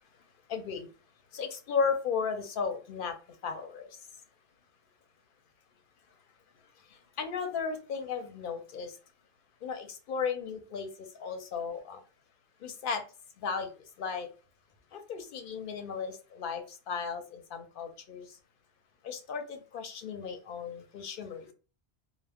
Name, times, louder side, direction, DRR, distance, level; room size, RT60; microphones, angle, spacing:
voice 1, 0.5-0.9 1.3-4.1 6.8-9.0 9.6-12.0 12.6-13.0 13.4-14.3 14.9-18.4 19.0-21.5, left 5 dB, 60° left, 6 dB, 0.7 m, -35 dB
2.1 x 2.0 x 3.4 m, 0.34 s
omnidirectional pair, 1.1 m